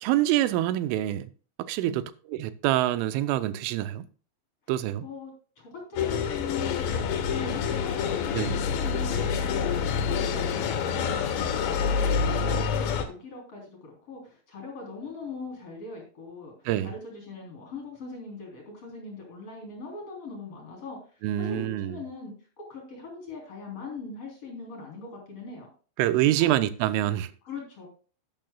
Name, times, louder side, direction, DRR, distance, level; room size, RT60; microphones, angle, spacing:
voice 1, 0.0-1.3 1.6-2.0 2.3-4.1 4.7-5.0 8.3-8.6 16.7-16.9 21.2-21.9 26.0-27.3, right 13 dB, 90° right, 3.2 m, -26 dB
voice 2, 5.6-16.5 16.8-25.7 26.3-26.5 27.4-27.9, left 4 dB, 35° left, 4.1 m, -41 dB
sound 1, 6.0-13.1, left 6 dB, 70° left, 3.3 m, -27 dB
12.0 x 10.5 x 2.3 m
omnidirectional pair, 5.6 m